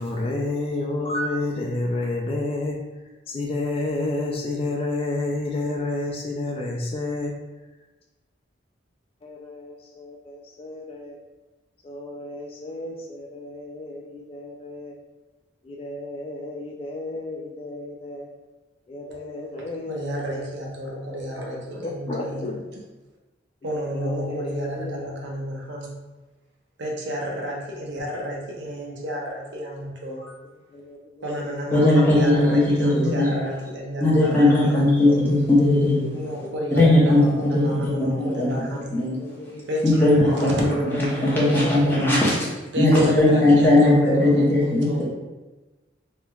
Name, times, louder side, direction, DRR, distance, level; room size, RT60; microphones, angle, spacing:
voice 1, 0.0-2.8 3.3-7.3 9.2-11.2 11.8-14.9 15.6-18.3 18.9-20.5 21.8-22.6 23.6-25.1 30.7-32.6 34.8-35.3 36.0-36.9 37.8-39.7 40.3-42.3 43.1-44.5, left 2 dB, 30° left, -1 dB, 0.3 m, -31 dB
voice 2, 19.9-22.5 23.6-26.0 26.8-30.4 31.2-35.2 36.1-39.0 39.7-42.1 42.7-45.0, equal, 70° right, -2 dB, 0.7 m, -31 dB
voice 3, 31.7-33.3 34.0-36.1 36.7-38.5 38.9-39.2 39.8-45.0, left 1 dB, 10° left, -6 dB, 0.7 m, -18 dB
3.2 x 2.9 x 2.3 m, 1.1 s
head